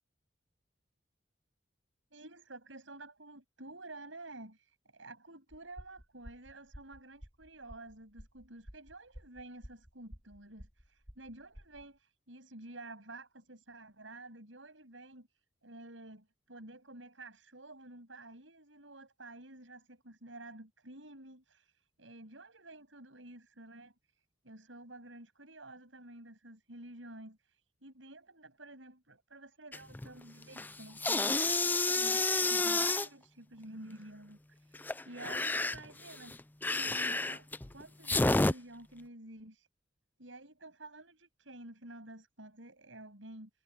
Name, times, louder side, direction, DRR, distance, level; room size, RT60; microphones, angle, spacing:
voice 1, 2.1-36.4 36.7-39.7 40.2-43.5, right 2 dB, 90° right, 7.7 m, -51 dB
sound 1, 5.5-11.9, equal, 20° right, 3.8 m, -52 dB
sound 2, 29.7-30.1 30.4-33.1 34.7-38.5, left 2 dB, 10° left, 0.4 m, -30 dB
head